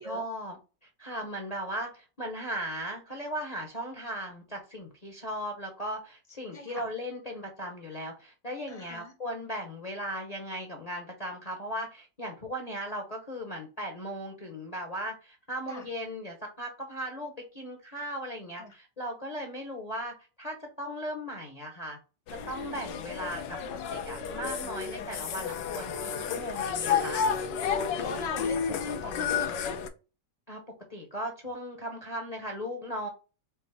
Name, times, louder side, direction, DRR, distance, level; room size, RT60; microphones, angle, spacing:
voice 1, 0.0-22.0 22.5-27.2 30.5-30.6 30.9-33.1, equal, 35° left, 2 dB, 0.7 m, -37 dB
voice 2, 6.5-6.9 8.7-9.1 15.7-15.9 18.6-18.7 28.0-29.7, left 1 dB, 30° right, -2 dB, 0.7 m, -42 dB
sound 1, 22.3-29.9, left 6 dB, 85° left, 1.3 m, -31 dB
5.1 x 2.5 x 3.3 m, 0.32 s
omnidirectional pair, 1.9 m